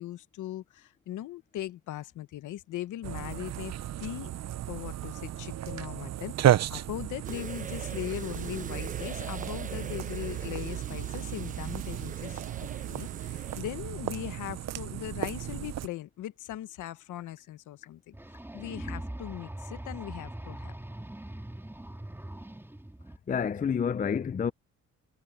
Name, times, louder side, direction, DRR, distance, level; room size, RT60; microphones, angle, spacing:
voice 1, 0.0-4.3 4.7-12.4 12.9-18.2 18.5-20.7, left 13 dB, 80° left, 1.2 m, -39 dB
sound 1, 3.0-15.9, right 12 dB, 60° right, 0.8 m, -33 dB
sound 2, 7.2-13.6, right 5 dB, 25° right, 0.9 m, -43 dB
sound 3, 18.1-23.2, right 1 dB, 5° right, 3.5 m, -41 dB
voice 2, 23.3-24.5, left 7 dB, 25° left, 0.5 m, -28 dB
cardioid pair, 90°, 30 cm